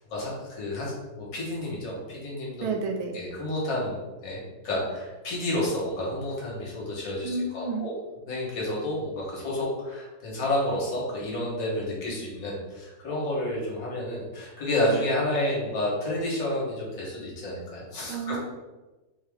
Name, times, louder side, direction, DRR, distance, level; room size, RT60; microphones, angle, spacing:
voice 1, 0.1-2.7 3.1-7.9 8.3-18.4, left 1 dB, 60° left, -5 dB, 1.9 m, -30 dB
voice 2, 2.6-3.1 7.2-7.9 18.1-18.4, right 4 dB, 80° right, 3 dB, 1.4 m, -30 dB
4.7 x 2.8 x 3.5 m, 1.1 s
omnidirectional pair, 2.4 m